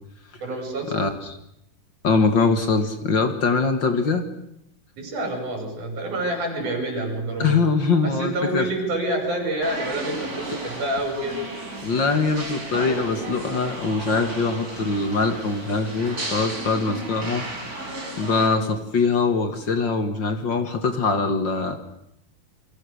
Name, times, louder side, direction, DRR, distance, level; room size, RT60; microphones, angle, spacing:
voice 1, 0.4-1.1 5.0-7.6 8.0-11.4, right 1 dB, 70° right, 3 dB, 6.7 m, -27 dB
voice 2, 2.0-4.3 7.4-8.7 11.8-17.5 17.8-17.9 18.2-21.8, left 4 dB, 40° left, 8 dB, 2.1 m, -22 dB
sound 1, 9.6-18.5, right 2 dB, 25° right, 4.8 m, -34 dB
29.0 x 23.0 x 6.5 m, 0.75 s
omnidirectional pair, 3.6 m